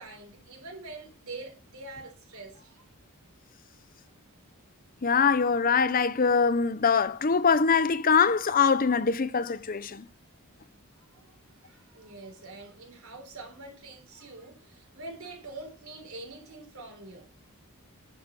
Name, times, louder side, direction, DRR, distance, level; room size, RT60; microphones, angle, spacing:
voice 1, 0.0-2.9 11.0-17.3, right 2 dB, 70° right, 3.7 m, -45 dB
voice 2, 5.0-10.0, left 5 dB, 40° left, 0.7 m, -23 dB
11.0 x 5.8 x 7.5 m
head